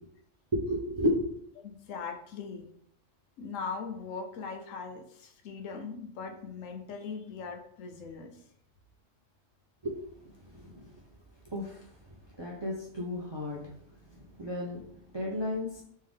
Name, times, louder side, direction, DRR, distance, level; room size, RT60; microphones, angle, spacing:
voice 1, 0.5-1.3 9.8-10.0 10.6-10.9 11.5-11.8 12.4-13.6 14.4-14.8 15.1-15.8, left 1 dB, 35° right, -2 dB, 0.4 m, -32 dB
voice 2, 1.6-2.7 3.4-8.3, left 5 dB, 85° left, 3 dB, 1.1 m, -40 dB
3.7 x 3.2 x 3.4 m, 0.69 s
omnidirectional pair, 1.3 m